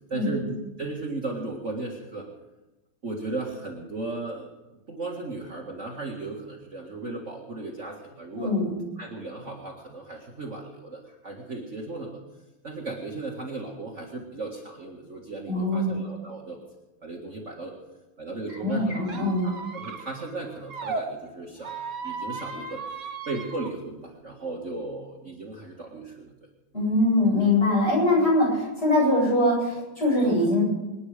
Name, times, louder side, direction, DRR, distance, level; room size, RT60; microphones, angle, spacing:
voice 1, 0.1-2.3 3.0-4.5 4.9-8.5 9.0-12.2 12.6-16.6 17.0-17.7 18.2-19.0 19.4-23.0 23.3-26.3, right 2 dB, 35° right, -2 dB, 2.1 m, -36 dB
voice 2, 8.3-8.7 15.5-15.9 18.6-19.5 26.7-30.6, left 1 dB, 30° left, -5 dB, 8.2 m, -22 dB
Squeak, 19.0-21.0 21.6-23.7, right 4 dB, 55° right, 2.1 m, -36 dB
26.0 x 9.9 x 5.1 m, 1.0 s
omnidirectional pair, 2.2 m